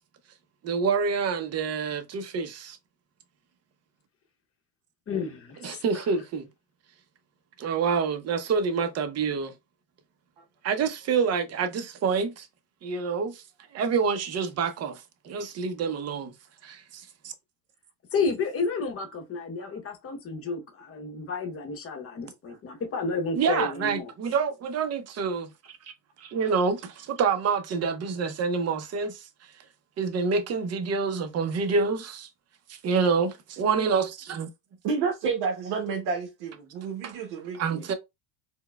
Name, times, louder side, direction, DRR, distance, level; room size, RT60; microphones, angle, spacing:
voice 1, 0.6-2.8 5.6-6.5 7.6-9.5 10.6-12.5 12.8-13.4 13.7-16.3 16.6-17.3 23.4-25.8 26.2-29.3 30.0-32.3 32.7-34.5 37.0-37.1 37.5-37.9, right 5 dB, 30° right, 0.7 m, -27 dB
voice 2, 5.1-5.4 5.9-6.1 18.1-24.1, left 4 dB, 30° left, 0.9 m, -31 dB
voice 3, 34.8-37.9, right 5 dB, 55° right, 1.0 m, -30 dB
4.4 x 2.2 x 2.3 m
supercardioid pair, 105°, 49 cm